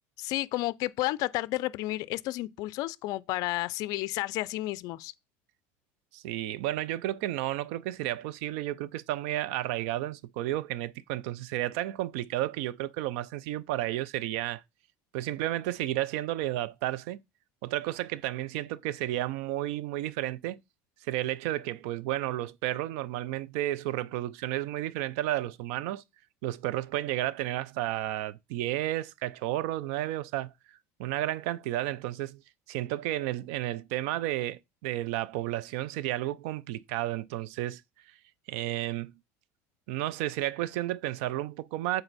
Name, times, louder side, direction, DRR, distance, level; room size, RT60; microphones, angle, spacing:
voice 1, 0.2-5.1, left 18 dB, 60° left, 0.4 m, -31 dB
voice 2, 6.1-14.6 15.1-17.2 17.6-20.6 21.1-26.0 26.4-30.5 31.0-32.4 32.7-37.8 38.5-39.1 39.9-42.0, right 14 dB, 75° right, 0.5 m, -32 dB
7.9 x 4.1 x 4.1 m
supercardioid pair, 125°, 7 cm